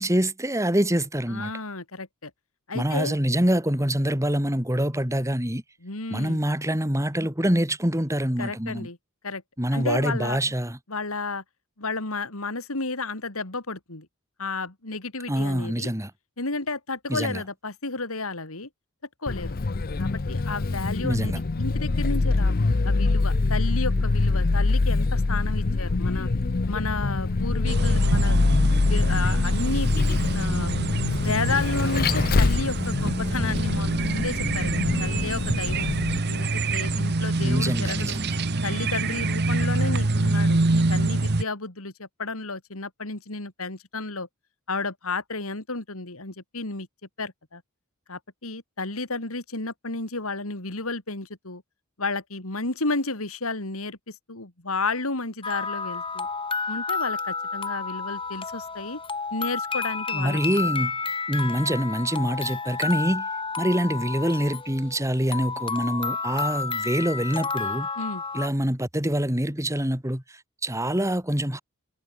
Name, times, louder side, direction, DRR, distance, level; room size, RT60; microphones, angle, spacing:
voice 1, 0.0-1.5 2.7-5.6 6.1-8.9 9.6-10.8 15.3-16.1 17.1-17.4 21.0-21.4 37.4-38.3 60.1-60.9 61.3-63.3 63.6-67.9 68.3-71.6, right 1 dB, 15° right, 3.4 m, -25 dB
voice 2, 1.3-2.3 2.7-3.2 5.8-6.4 8.4-9.0 9.2-9.4 9.7-10.4 10.9-11.4 11.8-14.1 14.4-15.9 16.4-18.7 19.2-19.6 20.0-26.3 26.7-28.4 28.7-29.9 30.3-30.7 31.2-35.9 36.3-38.2 38.6-44.3 44.7-46.9 47.2-47.6 48.1-51.6 52.0-56.3 56.7-59.0 59.3-60.7 68.0-68.2, left 3 dB, 70° left, 3.1 m, -32 dB
Vehicle, 19.3-36.2, left 3 dB, 45° left, 0.6 m, -24 dB
sound 1, 27.7-41.4, right 2 dB, 50° right, 1.0 m, -26 dB
sound 2, 55.4-68.5, left 4 dB, 25° left, 6.9 m, -31 dB
head